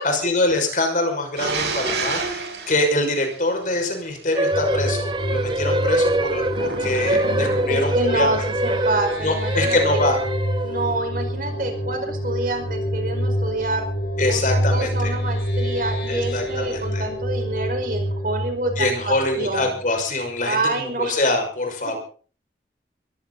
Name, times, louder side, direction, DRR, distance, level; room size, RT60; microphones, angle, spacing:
voice 1, 0.0-8.3 9.2-10.2 14.2-15.1 16.1-17.1 18.8-22.0, left 2 dB, 45° left, 3 dB, 6.1 m, -24 dB
sound 1, 1.4-4.1 6.5-7.9, right 4 dB, 80° right, 6.4 m, -30 dB
voice 2, 1.6-2.3 7.7-10.0 10.6-13.9 14.3-19.7 20.4-21.2, right 2 dB, 50° right, 5 dB, 5.2 m, -27 dB
sound 2, 4.4-10.9, right 1 dB, 25° right, 1.2 m, -24 dB
sound 3, 4.5-20.0, equal, 80° left, 5.6 m, -27 dB
22.0 x 15.5 x 4.2 m, 0.42 s
head